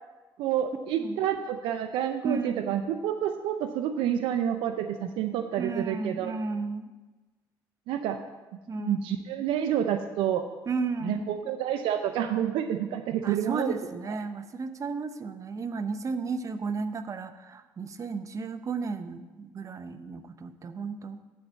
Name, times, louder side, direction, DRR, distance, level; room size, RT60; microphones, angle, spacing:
voice 1, 0.4-6.3 7.9-8.2 8.8-10.4 11.0-13.8, right 10 dB, 85° right, 7 dB, 0.5 m, -29 dB
voice 2, 2.2-2.7 5.6-6.9 8.7-9.0 10.7-11.3 13.2-21.2, right 4 dB, 40° right, 11 dB, 0.7 m, -33 dB
10.5 x 4.1 x 7.3 m, 1.2 s
cardioid pair, 90°, 9 cm